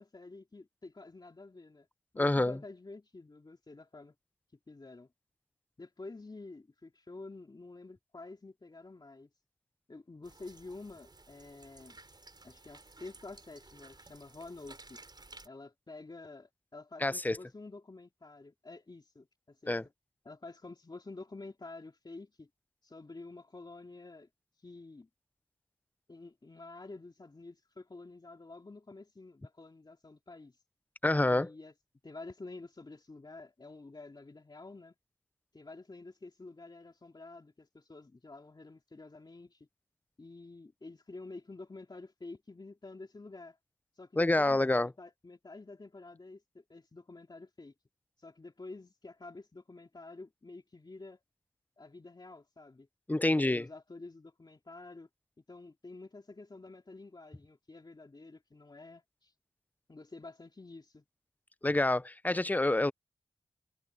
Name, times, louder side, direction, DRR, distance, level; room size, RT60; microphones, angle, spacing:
voice 1, 0.0-1.9 2.1-4.1 4.7-5.1 5.8-9.3 9.9-12.0 12.4-15.0 15.4-19.8 20.2-22.5 22.8-24.3 24.6-25.1 26.1-30.6 31.2-31.7 32.0-34.9 35.5-39.7 40.2-43.6 43.9-47.7 48.2-51.2 51.8-52.9 53.2-55.1 55.5-59.3 59.9-61.0, left 3 dB, 40° left, 3.2 m, -49 dB
voice 2, 2.2-2.6 17.0-17.4 19.7-19.8 31.0-31.5 44.2-44.9 53.1-53.7 61.6-62.9, left 2 dB, 15° left, 0.6 m, -27 dB
sound 1, 10.2-15.5, right 3 dB, 40° right, 5.7 m, -55 dB
cardioid pair, 45°, 11 cm